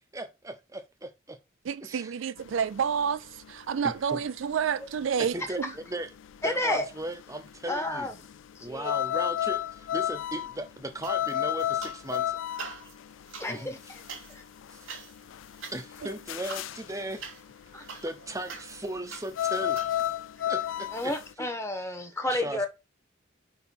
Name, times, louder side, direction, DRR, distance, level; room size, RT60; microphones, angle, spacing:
voice 1, 0.1-1.4 1.8-2.1 4.1-4.2 5.2-6.1 6.4-8.1 8.6-12.4 13.5-13.7 14.7-14.8 15.7-17.2 17.8-19.8 20.5-21.1 21.4-21.5 21.8-21.9 22.3-22.7, right 1 dB, 15° right, 0.7 m, -37 dB
voice 2, 1.6-5.7 16.0-16.1, right 7 dB, 75° right, 0.4 m, -29 dB
sound 1, 2.4-21.3, left 11 dB, 70° left, 0.3 m, -33 dB
voice 3, 6.4-6.9 7.7-8.1 8.5-8.9 13.4-13.8 14.3-14.4 17.7-17.8 20.9-22.7, left 1 dB, 15° left, 1.1 m, -30 dB
sound 2, 11.0-12.2 12.5-19.9, right 5 dB, 90° right, 2.3 m, -45 dB
5.2 x 4.5 x 5.3 m
head